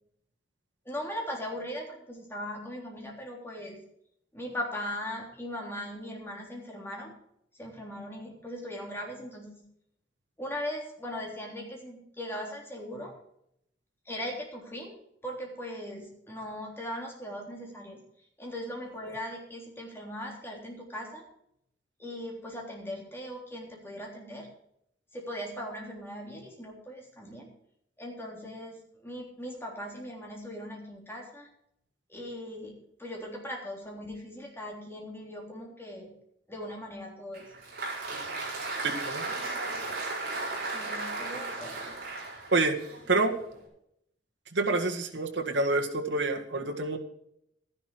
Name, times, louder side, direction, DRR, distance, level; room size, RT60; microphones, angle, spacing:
voice 1, 0.9-3.8 4.3-7.1 7.6-9.6 10.4-13.1 14.1-14.9 15.2-18.0 18.4-21.3 22.0-24.5 25.1-27.5 28.0-31.5 32.1-36.1 36.5-37.5 40.7-42.0, equal, 15° left, -1 dB, 3.5 m, -39 dB
Applause, 37.3-43.6, right 3 dB, 55° right, 4.9 m, -36 dB
voice 2, 38.8-39.3 42.5-42.8 43.1-43.3 44.5-47.0, right 3 dB, 75° right, 2 dB, 1.9 m, -27 dB
12.5 x 11.0 x 4.7 m, 0.74 s
head